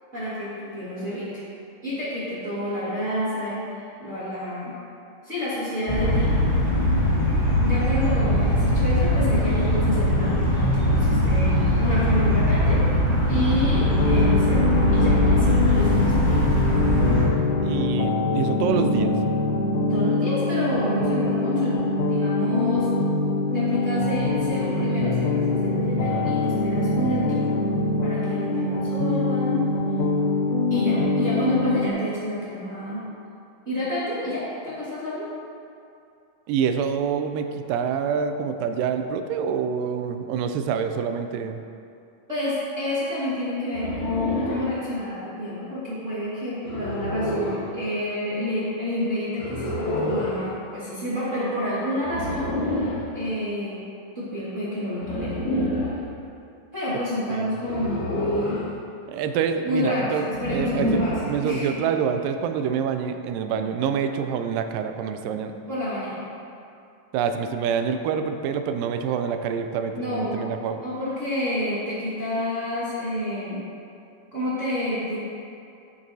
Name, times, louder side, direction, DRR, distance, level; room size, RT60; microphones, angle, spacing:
voice 1, 0.1-1.4 1.8-4.7 5.2-6.3 7.6-12.8 13.3-16.3 19.9-21.8 22.1-22.9 23.5-27.5 28.0-29.6 30.7-33.0 33.6-35.3 42.3-52.9 53.1-53.8 54.1-55.4 56.7-58.6 59.6-61.8 65.7-66.2 69.9-70.4 70.8-73.6 74.3-75.2, left 1 dB, 30° right, -11 dB, 1.5 m, -29 dB
sound 1, 5.9-17.3, left 1 dB, 30° left, 0.9 m, -21 dB
sound 2, 13.7-31.9, left 2 dB, 90° left, 1.7 m, -24 dB
voice 2, 17.6-19.1 36.5-41.6 57.4-57.5 59.1-65.5 67.1-70.8, right 7 dB, 80° right, 7 dB, 2.1 m, -26 dB
sound 3, 43.7-44.7 46.6-47.6 49.4-50.4 52.0-53.0 55.0-56.0 57.6-58.7 60.3-61.3, left 1 dB, 60° left, 2.5 m, -27 dB
12.0 x 7.6 x 2.8 m, 2.5 s
omnidirectional pair, 4.1 m